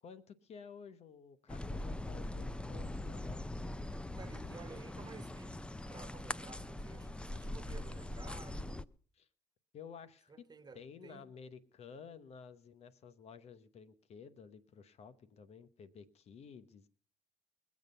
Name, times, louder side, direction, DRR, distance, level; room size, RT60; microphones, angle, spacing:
voice 1, 0.0-3.6 9.1-9.3 9.7-10.5 10.7-16.9, left 6 dB, 60° left, 1.1 m, -53 dB
sound 1, 1.5-8.8, left 1 dB, 10° left, 0.6 m, -42 dB
voice 2, 4.2-5.6 5.9-8.8 10.3-11.3, right 4 dB, 35° right, 1.4 m, -53 dB
21.5 x 7.5 x 5.4 m
supercardioid pair, 70°, 12 cm